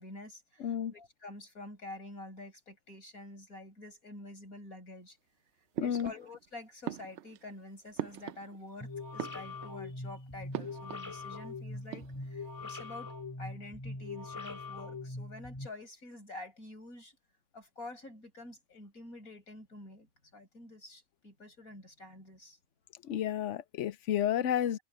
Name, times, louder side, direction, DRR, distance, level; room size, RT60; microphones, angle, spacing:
voice 1, 0.0-5.2 5.8-13.1 13.4-17.2 17.5-22.6, left 2 dB, 85° left, 8.3 m, -48 dB
voice 2, 0.6-0.9 5.8-6.1 23.0-24.8, left 10 dB, 65° left, 0.9 m, -31 dB
sound 1, 5.7-6.5 6.8-8.8 9.1-9.9 10.5-11.1 11.4-11.5 11.8-12.5, right 11 dB, 65° right, 0.8 m, -41 dB
sound 2, 8.8-15.7, left 3 dB, 15° left, 2.9 m, -42 dB
open air
omnidirectional pair, 1.4 m